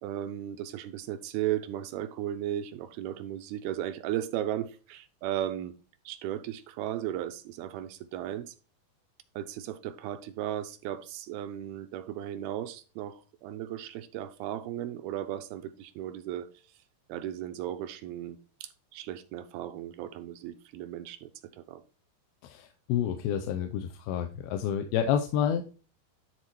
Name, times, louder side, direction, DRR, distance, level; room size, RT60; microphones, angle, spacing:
voice 1, 0.0-5.8 6.1-8.5 9.4-16.5 17.1-21.3 21.6-21.8, right 12 dB, 80° right, 9 dB, 2.4 m, -36 dB
voice 2, 22.4-25.6, left 9 dB, 80° left, 6 dB, 2.5 m, -29 dB
11.0 x 4.2 x 4.3 m, 0.36 s
omnidirectional pair, 4.6 m